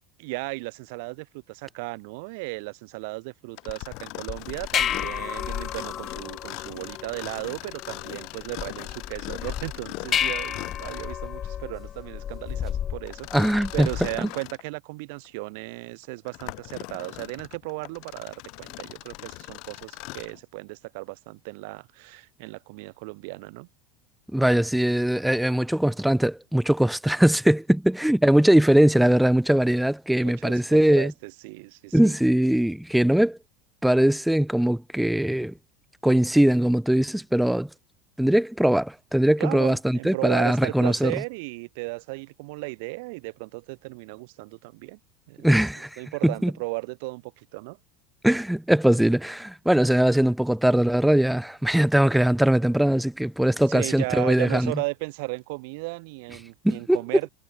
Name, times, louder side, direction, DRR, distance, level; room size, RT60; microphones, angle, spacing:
voice 1, 0.2-23.7 30.2-32.2 39.4-45.0 45.3-45.5 46.0-47.8 53.7-57.3, right 28 dB, 70° right, 2.7 m, -35 dB
Mechanisms, 3.5-11.2 13.1-14.7 15.2-15.3 16.0-20.4, left 26 dB, 60° left, 2.1 m, -40 dB
sound 1, 4.3-14.2, left 9 dB, 35° left, 0.5 m, -32 dB
voice 2, 13.3-13.9 14.2-14.3 24.3-31.1 31.9-33.4 33.8-35.5 36.0-37.7 38.2-41.1 45.4-46.5 48.2-54.7 56.6-57.0, right 1 dB, ahead, 0.9 m, -21 dB
supercardioid pair, 125°, 0 cm